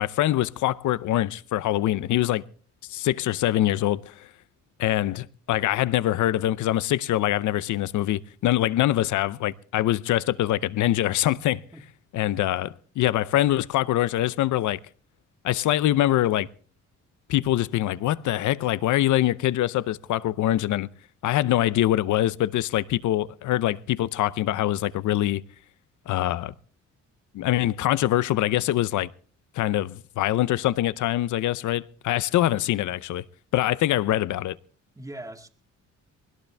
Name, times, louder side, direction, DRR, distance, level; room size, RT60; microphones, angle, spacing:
voice 1, 0.0-2.4 2.9-4.3 4.8-11.6 12.1-14.8 15.4-16.5 17.3-20.9 21.2-25.4 26.1-26.5 27.3-29.1 29.5-33.2 33.5-34.6, left 14 dB, 75° left, 0.7 m, -24 dB
voice 2, 21.4-21.9 35.0-35.5, right 1 dB, 10° right, 1.9 m, -42 dB
21.0 x 17.5 x 3.4 m
cardioid pair, 90°, 30 cm